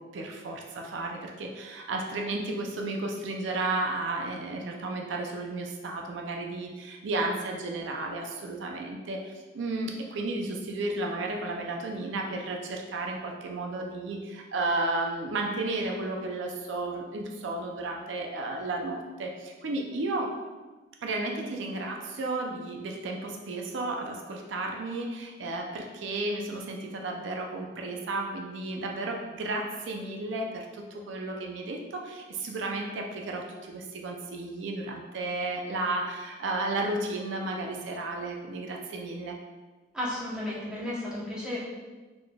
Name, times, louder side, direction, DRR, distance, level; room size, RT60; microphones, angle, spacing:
voice 1, 0.0-20.3 21.0-39.4, right 2 dB, 80° right, 1 dB, 0.4 m, -33 dB
voice 2, 39.9-41.6, left 1 dB, 5° right, -8 dB, 0.8 m, -33 dB
4.2 x 3.2 x 2.2 m, 1.3 s
head